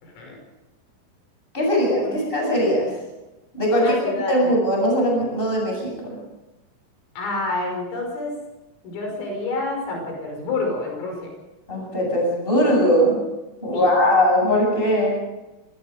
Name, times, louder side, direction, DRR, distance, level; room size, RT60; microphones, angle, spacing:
voice 1, 0.0-0.4 2.0-2.2 3.7-4.6 7.2-8.3 8.8-11.3 13.7-13.9, left 2 dB, 75° left, 1 dB, 8.3 m, -28 dB
voice 2, 1.5-2.9 3.5-4.0 4.2-6.2 11.7-13.2 13.6-15.2, equal, 10° left, -1 dB, 7.9 m, -20 dB
25.5 x 19.5 x 5.2 m, 1.0 s
omnidirectional pair, 6.0 m